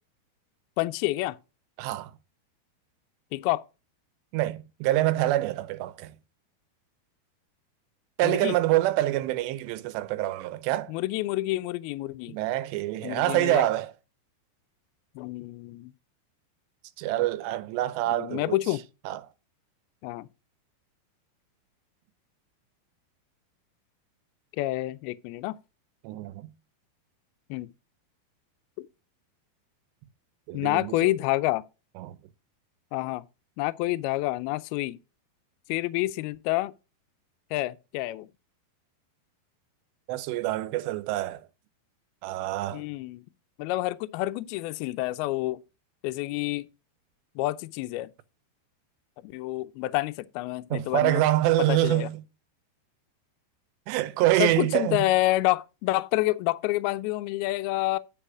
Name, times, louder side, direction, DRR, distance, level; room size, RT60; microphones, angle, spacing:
voice 1, 0.8-1.4 3.3-3.6 8.2-8.6 10.9-12.4 13.0-13.6 15.2-15.9 18.1-18.8 20.0-20.3 24.6-25.6 27.5-27.7 28.8-28.9 30.5-31.6 32.9-33.2 33.6-35.0 35.7-36.7 37.5-38.3 42.7-43.2 43.6-45.6 46.0-46.7 47.4-48.1 49.2-51.2 51.6-52.1 54.4-58.0, left 18 dB, 80° left, 2.3 m, -28 dB
voice 2, 1.8-2.1 4.3-6.1 8.2-10.9 12.3-13.9 17.0-18.6 19.1-19.2 26.0-26.5 30.5-31.1 32.0-32.2 40.1-41.4 42.2-42.8 50.7-52.2 53.9-55.0, right 15 dB, 85° right, 2.9 m, -26 dB
10.0 x 4.9 x 6.0 m
omnidirectional pair, 4.9 m